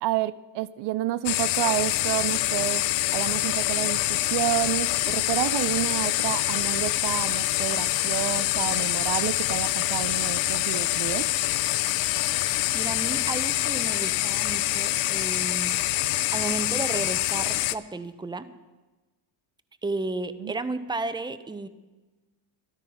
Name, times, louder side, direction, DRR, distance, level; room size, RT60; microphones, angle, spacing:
voice 1, 0.0-2.8 3.1-11.3 20.4-20.5, right 14 dB, 65° right, 14 dB, 0.6 m, -29 dB
sound 1, 1.3-17.8, left 17 dB, 80° left, 0.7 m, -25 dB
voice 2, 12.7-15.7 16.3-18.4 19.8-21.7, right 3 dB, 10° right, 11 dB, 0.8 m, -33 dB
13.5 x 12.0 x 5.6 m, 1.2 s
cardioid pair, 100°, 44 cm